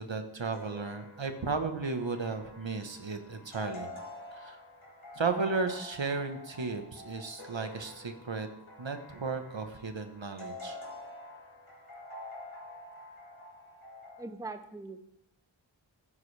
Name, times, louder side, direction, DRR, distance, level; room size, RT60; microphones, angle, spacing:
voice 1, 0.0-3.9 4.4-4.6 5.1-8.5 8.8-10.8, right 4 dB, 70° right, 7 dB, 1.2 m, -34 dB
sound 1, 0.5-14.2, left 1 dB, 80° left, 3.7 m, -47 dB
voice 2, 14.2-15.0, right 3 dB, 5° right, 9 dB, 0.7 m, -41 dB
15.0 x 9.6 x 3.4 m, 0.81 s
wide cardioid pair, 45°, 47 cm